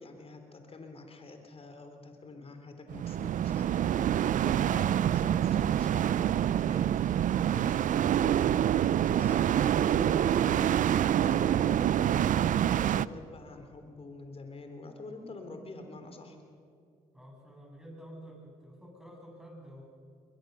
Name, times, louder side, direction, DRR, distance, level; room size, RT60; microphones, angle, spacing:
voice 1, 0.0-10.7 11.2-16.4, left 3 dB, 40° left, 6 dB, 3.6 m, -47 dB
sound 1, 2.9-13.1, right 10 dB, 60° right, 0.5 m, -26 dB
voice 2, 17.1-19.8, equal, 5° right, 0 dB, 7.8 m, -49 dB
22.0 x 20.5 x 6.9 m, 2.3 s
supercardioid pair, 60°, 15 cm